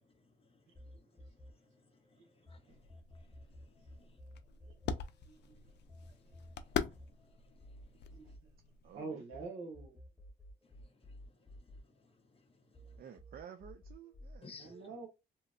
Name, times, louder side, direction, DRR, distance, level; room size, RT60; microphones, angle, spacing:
sound 1, 0.7-2.6 2.9-9.4 9.7-12.4 12.7-14.4, left 1 dB, ahead, 1.0 m, -54 dB
voice 1, 2.1-3.3 4.0-4.2 5.5-5.6 7.5-7.6 8.0-8.1 11.7-11.8 12.3-12.4 12.7-12.8 14.4-14.7, left 4 dB, 30° left, 0.6 m, -57 dB
sound 2, 2.7-9.0, left 8 dB, 60° left, 0.4 m, -43 dB
voice 2, 5.2-5.6 8.1-8.3 8.9-10.0 14.5-15.1, right 3 dB, 85° right, 1.1 m, -46 dB
voice 3, 8.8-9.5 13.0-15.0, right 8 dB, 50° right, 0.4 m, -53 dB
2.9 x 2.1 x 2.4 m
cardioid pair, 90°, 20 cm